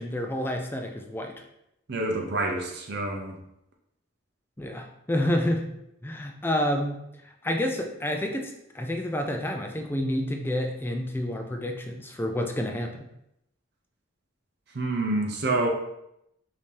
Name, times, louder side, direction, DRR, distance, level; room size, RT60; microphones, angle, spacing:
voice 1, 0.0-1.3 4.6-5.7 6.0-7.0 7.4-13.0, left 1 dB, 10° left, 3 dB, 0.4 m, -29 dB
voice 2, 1.9-3.4 14.7-15.7, right 2 dB, 55° right, 1 dB, 0.6 m, -27 dB
5.3 x 2.8 x 3.3 m, 0.81 s
head